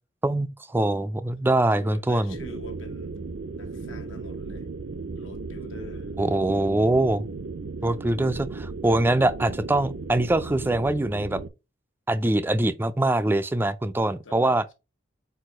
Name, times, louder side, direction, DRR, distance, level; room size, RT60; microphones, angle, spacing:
voice 1, 0.2-2.4 6.2-7.3 7.8-11.4 12.1-14.6, right 1 dB, 10° right, 0.3 m, -23 dB
voice 2, 1.7-3.1 3.5-4.7 5.1-6.1 7.9-8.1 14.1-14.7, left 1 dB, 85° left, 1.6 m, -45 dB
sound 1, 2.3-11.5, right 3 dB, 75° right, 0.6 m, -36 dB
4.6 x 4.4 x 5.0 m
head